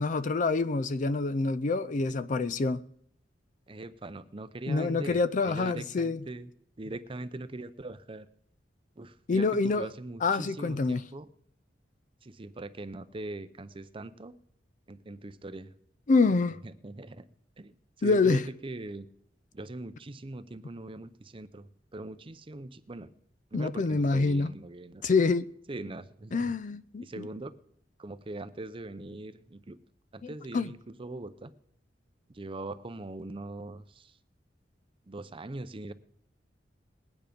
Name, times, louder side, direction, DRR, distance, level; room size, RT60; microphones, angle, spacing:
voice 1, 0.0-2.8 4.7-6.2 9.3-9.9 10.2-11.0 16.1-16.6 18.0-18.5 23.5-24.5 25.0-25.5 26.3-27.3 30.2-30.7, left 3 dB, 45° left, 0.4 m, -26 dB
voice 2, 1.8-2.1 3.7-6.5 6.8-8.3 9.0-11.3 12.2-14.4 14.9-15.7 16.6-17.2 17.6-19.1 19.5-21.7 21.9-23.1 23.5-25.0 25.7-26.5 27.0-27.5 28.0-29.8 30.1-31.5 32.3-34.1 35.1-35.9, right 2 dB, 30° right, 0.6 m, -41 dB
19.5 x 9.2 x 5.2 m
head